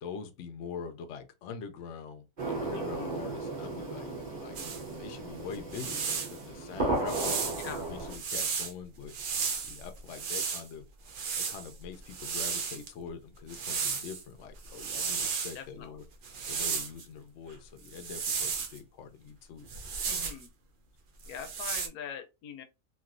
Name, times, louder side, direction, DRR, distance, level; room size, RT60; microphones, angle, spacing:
voice 1, 0.0-4.1 4.4-4.6 5.0-9.1 9.6-10.9 11.4-16.0 16.5-19.7, left 6 dB, 65° left, 0.8 m, -44 dB
sound 1, 2.4-8.1, right 2 dB, 35° right, 1.1 m, -35 dB
voice 2, 2.7-3.1 7.6-7.8 15.5-16.0 20.1-20.5 21.3-22.6, left 8 dB, 80° left, 1.1 m, -43 dB
sound 2, 4.5-4.8 5.5-6.4 7.1-8.7 9.1-10.6 11.1-12.9 13.5-14.2 14.6-15.6 16.2-17.0 17.9-18.8 19.7-20.4 21.2-21.9, right 6 dB, 70° right, 0.5 m, -34 dB
3.0 x 2.6 x 2.5 m
omnidirectional pair, 1.6 m